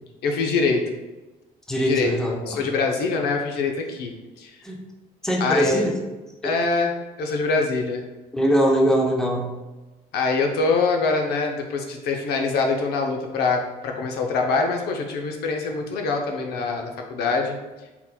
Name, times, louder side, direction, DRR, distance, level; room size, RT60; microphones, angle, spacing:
voice 1, 0.2-1.0 1.8-4.1 4.4-4.5 5.4-5.8 6.4-6.9 7.2-8.0 10.1-17.6, left 4 dB, 70° left, 3 dB, 0.6 m, -24 dB
voice 2, 1.7-2.6 4.6-4.8 5.2-6.0 6.4-6.5 8.3-9.6, equal, 5° left, -1 dB, 0.6 m, -22 dB
4.2 x 3.8 x 2.2 m, 1.1 s
cardioid pair, 110°, 17 cm